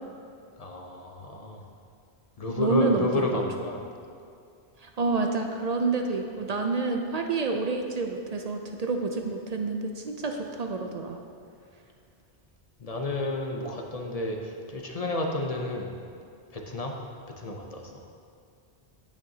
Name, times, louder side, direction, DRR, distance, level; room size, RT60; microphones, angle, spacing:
voice 1, 0.6-1.6 2.4-3.9 12.8-15.9 16.5-16.9 17.4-18.0, left 2 dB, 40° left, 1 dB, 0.7 m, -31 dB
voice 2, 2.5-3.4 4.8-11.2, right 3 dB, 50° right, 3 dB, 0.5 m, -28 dB
9.1 x 8.5 x 2.8 m, 2.4 s
omnidirectional pair, 1.1 m